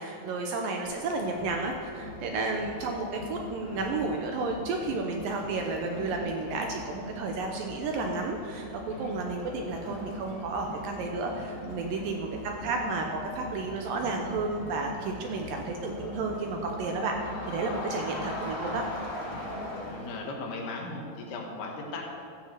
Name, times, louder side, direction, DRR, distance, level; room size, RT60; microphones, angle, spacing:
voice 1, 0.0-18.9, right 3 dB, 75° right, 2 dB, 2.2 m, -32 dB
Crowd, 0.8-20.3, equal, 50° left, 4.5 m, -40 dB
voice 2, 17.8-18.2 19.5-22.1, left 3 dB, 75° left, 0 dB, 3.4 m, -39 dB
13.5 x 6.1 x 7.5 m, 2.3 s
omnidirectional pair, 4.7 m